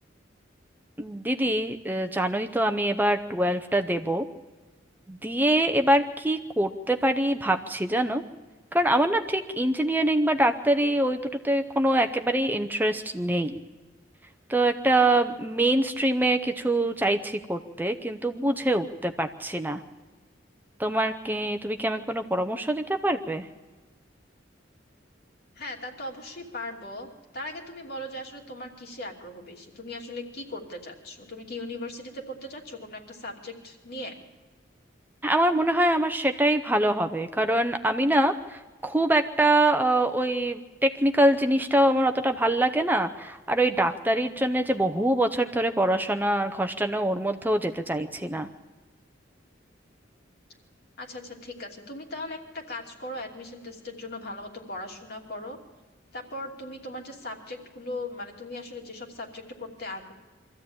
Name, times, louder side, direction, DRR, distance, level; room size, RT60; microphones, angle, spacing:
voice 1, 1.0-4.3 5.1-8.2 8.7-13.6 14.5-19.8 20.8-23.5 35.2-48.5, right 1 dB, 10° right, 7 dB, 0.7 m, -24 dB
voice 2, 25.5-34.1 51.0-55.6 56.1-60.1, left 1 dB, 60° left, 1 dB, 2.8 m, -38 dB
24.0 x 14.5 x 8.7 m, 1.3 s
head